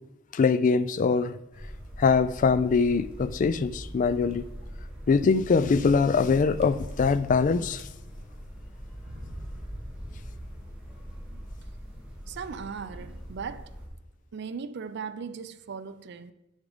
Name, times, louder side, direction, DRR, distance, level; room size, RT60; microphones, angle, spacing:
voice 1, 0.3-1.4 2.0-4.5 5.1-7.9, left 5 dB, 40° left, 0.3 m, -23 dB
sound 1, 1.5-13.9, equal, 5° right, 1.4 m, -42 dB
sound 2, 3.2-3.6 4.2-4.3 4.6-4.7 5.6-6.0 6.2-7.4 7.7-8.2 8.9-10.9, equal, 35° right, 1.1 m, -45 dB
voice 2, 12.3-13.7 14.3-16.3, right 6 dB, 60° right, 0.4 m, -38 dB
10.0 x 3.6 x 4.9 m
head